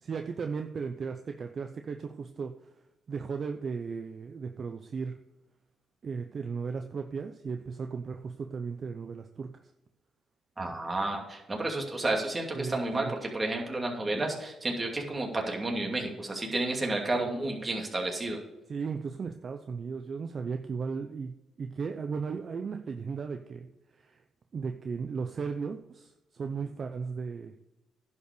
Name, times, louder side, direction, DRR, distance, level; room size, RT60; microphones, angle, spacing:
voice 1, 0.0-2.5 3.1-5.1 6.0-9.5 12.5-13.1 18.7-21.3 21.6-23.7 24.0-24.2 24.5-27.5, right 5 dB, 45° right, 6 dB, 0.7 m, -36 dB
voice 2, 10.6-18.4, right 2 dB, 25° right, 1 dB, 2.5 m, -31 dB
11.0 x 5.6 x 6.8 m, 0.97 s
cardioid pair, 90°, 0 cm